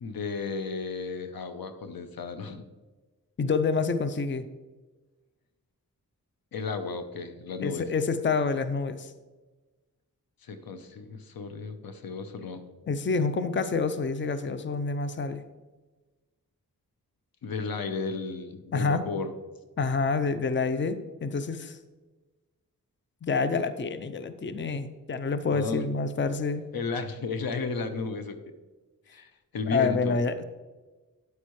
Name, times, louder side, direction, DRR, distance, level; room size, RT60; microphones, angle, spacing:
voice 1, 0.0-2.7 6.5-7.9 10.4-12.7 17.4-19.3 25.5-25.8 26.7-28.4 29.1-30.2, left 4 dB, 80° left, 9 dB, 0.8 m, -34 dB
voice 2, 3.4-4.4 7.6-9.1 12.9-15.4 18.7-19.0 19.8-21.8 23.2-26.7 29.7-30.4, left 4 dB, 35° left, 11 dB, 0.6 m, -28 dB
9.7 x 8.1 x 3.1 m, 1.2 s
cardioid pair, 65°, 35 cm